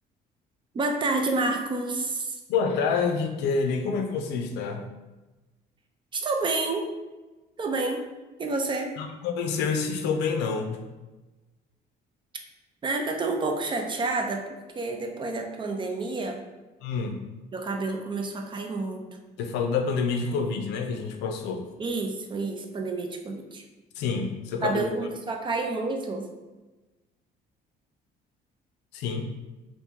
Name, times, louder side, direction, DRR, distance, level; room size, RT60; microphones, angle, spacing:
voice 1, 0.7-2.4 6.1-6.9 7.6-8.1 8.4-8.9 12.8-16.4 17.5-19.2 21.8-23.6 24.6-26.3, right 3 dB, 30° right, 3 dB, 0.4 m, -29 dB
voice 2, 2.5-4.8 9.0-10.8 16.8-17.2 19.4-21.6 24.0-24.8 28.9-29.3, left 5 dB, 85° left, 4 dB, 0.5 m, -27 dB
2.8 x 2.6 x 3.5 m, 1.1 s
cardioid pair, 110°, 17 cm